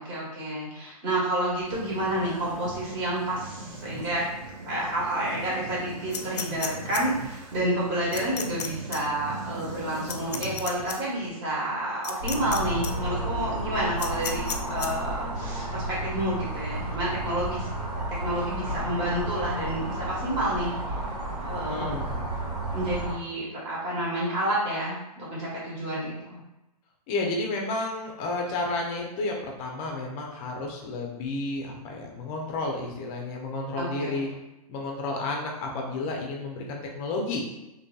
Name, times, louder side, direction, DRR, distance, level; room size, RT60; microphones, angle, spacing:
voice 1, 0.0-4.2 4.7-20.7 21.4-21.9 22.7-26.4 33.7-34.3, right 1 dB, 30° right, -7 dB, 1.2 m, -30 dB
sound 1, 1.7-11.3, right 2 dB, 50° right, 0.5 m, -40 dB
sound 2, 6.1-7.0 8.1-8.7 8.9-9.0 10.1-11.0 12.0-12.6 12.8-12.9 14.0-14.9, left 7 dB, 85° left, 0.4 m, -32 dB
sound 3, 12.2-23.1, right 1 dB, 80° right, 1.4 m, -32 dB
voice 2, 21.7-22.3 27.1-34.3 34.7-37.4, left 2 dB, 25° left, 0 dB, 0.4 m, -31 dB
2.6 x 2.5 x 2.2 m, 0.96 s
hypercardioid pair, 140°, 20 cm